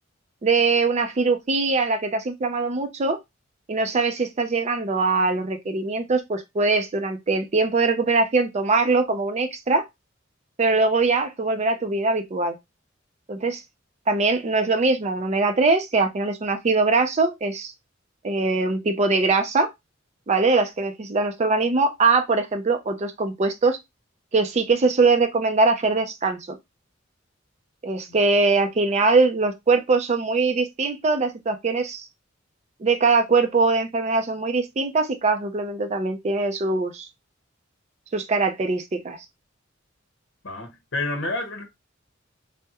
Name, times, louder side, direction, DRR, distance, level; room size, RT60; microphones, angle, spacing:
voice 1, 0.4-3.2 3.7-9.8 10.6-12.6 13.3-13.6 14.1-17.7 18.2-19.7 20.3-23.8 24.3-26.6 27.8-32.1 32.8-37.1 38.1-39.2, right 3 dB, 35° right, 0.4 m, -22 dB
voice 2, 40.4-41.6, left 2 dB, 65° left, 1.0 m, -29 dB
3.4 x 2.1 x 2.8 m
head